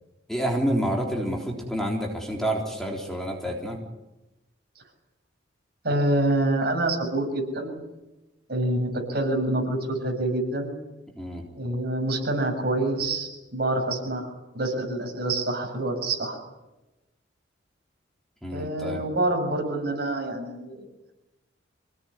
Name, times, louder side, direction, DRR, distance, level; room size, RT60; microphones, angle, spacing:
voice 1, 0.3-3.8 11.2-11.4 18.4-19.0, equal, ahead, 0 dB, 3.7 m, -28 dB
voice 2, 5.8-7.8 8.5-10.7 11.6-16.4 18.5-20.8, right 1 dB, 55° right, 3 dB, 7.3 m, -26 dB
27.0 x 18.5 x 10.0 m, 1.0 s
head